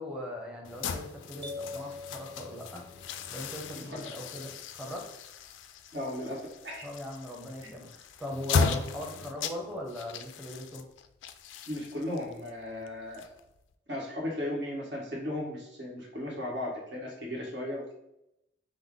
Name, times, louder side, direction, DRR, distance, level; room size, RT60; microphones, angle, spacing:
voice 1, 0.0-2.8 3.3-5.1 6.8-10.8, left 1 dB, 5° right, -1 dB, 0.8 m, -40 dB
Stabbing Cutting and spurting artery, 0.6-13.7, left 5 dB, 80° left, 0.3 m, -36 dB
sound 1, 1.4-3.3, left 3 dB, 25° right, 0.4 m, -43 dB
voice 2, 3.7-4.1 5.9-6.9 7.6-7.7 11.7-13.3 13.9-17.9, left 1 dB, 60° right, -3 dB, 1.4 m, -36 dB
5.4 x 2.0 x 3.7 m, 0.83 s
head